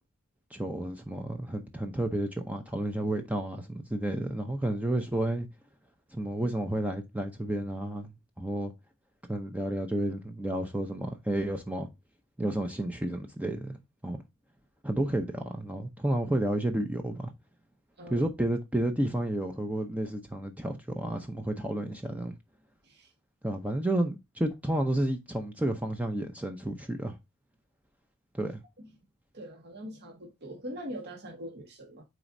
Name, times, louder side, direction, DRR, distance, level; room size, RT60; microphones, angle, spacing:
voice 1, 0.5-5.5 6.1-8.1 8.4-8.7 9.3-11.9 12.4-13.8 14.0-14.2 14.8-17.3 18.1-22.3 23.4-27.2 28.3-28.6, right 1 dB, 5° right, 0.6 m, -31 dB
voice 2, 28.4-28.9 29.3-32.0, equal, 50° right, 1.5 m, -43 dB
9.2 x 4.1 x 2.6 m
head